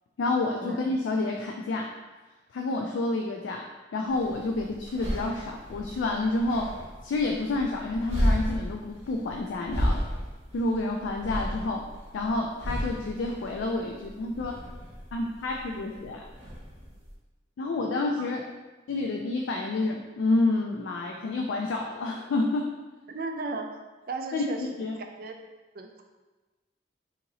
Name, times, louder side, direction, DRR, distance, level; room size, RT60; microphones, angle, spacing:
voice 1, 0.2-1.9 2.5-3.6 3.9-6.7 7.0-10.0 10.5-11.9 12.1-14.5 15.1-16.3 17.6-18.4 18.9-22.7 24.3-25.0, left 2 dB, 75° left, 1 dB, 0.3 m, -29 dB
sound 1, 4.1-17.1, equal, 30° right, 1.0 m, -33 dB
voice 2, 23.1-23.7 24.1-24.7 25.2-25.3 25.7-26.0, right 3 dB, 50° right, 4 dB, 0.3 m, -35 dB
2.9 x 2.8 x 3.9 m, 1.2 s
head